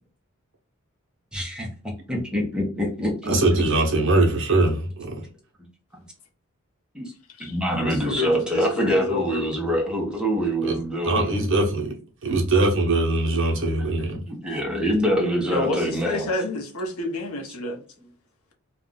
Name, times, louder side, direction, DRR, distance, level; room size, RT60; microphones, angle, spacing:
voice 1, 1.3-3.6 6.9-7.1 7.4-11.4 14.1-16.3, equal, 5° right, 0.7 m, -25 dB
voice 2, 3.3-5.2 10.6-10.8 11.0-12.0 12.2-14.2, right 2 dB, 55° right, 0.8 m, -22 dB
voice 3, 7.3-9.4 15.5-17.8, left 3 dB, 75° left, 0.8 m, -29 dB
2.4 x 2.2 x 3.7 m
head